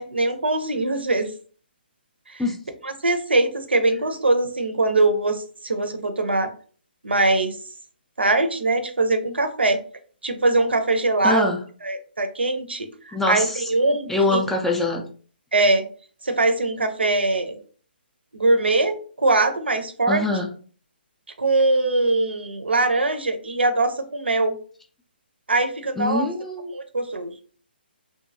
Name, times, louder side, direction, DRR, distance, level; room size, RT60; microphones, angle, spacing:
voice 1, 0.0-1.3 2.3-2.4 2.8-6.5 7.0-7.6 8.2-9.8 10.2-11.5 11.8-14.4 15.5-15.8 16.2-17.6 18.3-20.3 21.4-24.6 25.5-26.3 26.7-27.3, right 2 dB, 75° right, 8 dB, 0.6 m, -22 dB
voice 2, 11.2-11.6 13.1-13.6 14.1-15.0 20.1-20.5 26.0-26.7, left 2 dB, 5° left, 1 dB, 0.3 m, -23 dB
2.8 x 2.5 x 2.6 m, 0.42 s
figure-of-eight pair, 135°, 6 cm